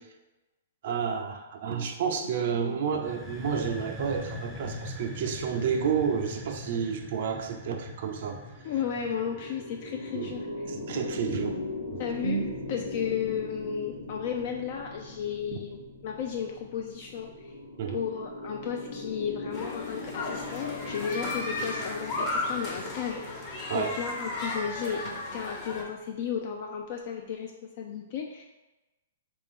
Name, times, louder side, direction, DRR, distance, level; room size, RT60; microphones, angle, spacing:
voice 1, 0.8-8.4 10.1-10.4 10.7-12.6 15.5-15.6 17.8-18.0 22.1-22.2 23.7-23.9, right 6 dB, 60° right, 5 dB, 0.4 m, -31 dB
sound 1, 2.9-10.5, left 1 dB, ahead, 0.5 m, -42 dB
sound 2, 8.4-25.9, left 3 dB, 90° left, 1.3 m, -40 dB
voice 2, 8.6-10.5 12.0-12.4 12.7-17.6 17.9-25.0 25.3-27.5 27.8-28.4, left 7 dB, 50° left, 2 dB, 0.3 m, -34 dB
sound 3, 19.5-25.8, left 2 dB, 30° left, 0.8 m, -34 dB
3.4 x 2.5 x 3.6 m, 1.1 s
hypercardioid pair, 135°, 0 cm